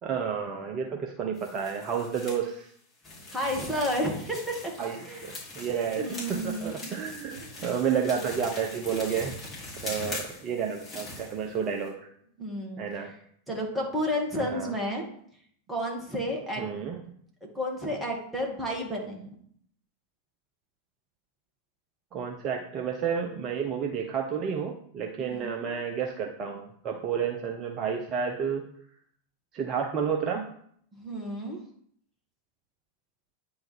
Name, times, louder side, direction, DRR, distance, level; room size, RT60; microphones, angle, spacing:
voice 1, 0.0-2.7 4.8-9.3 9.8-12.0 12.8-13.1 14.3-14.7 16.6-17.0 22.1-28.6 29.5-30.4, right 7 dB, 30° right, 2 dB, 0.7 m, -31 dB
sound 1, 1.4-2.4 3.0-11.9, left 2 dB, 20° left, 2.9 m, -41 dB
voice 2, 3.3-4.7 5.0-5.3 6.0-6.9 7.4-7.5 10.0-10.1 12.4-12.9 13.5-15.1 15.7-16.6 17.5-19.3 25.2-25.8 30.9-31.6, equal, 5° right, -2 dB, 1.9 m, -31 dB
8.9 x 3.8 x 4.4 m, 0.65 s
figure-of-eight pair, 90°, 0 cm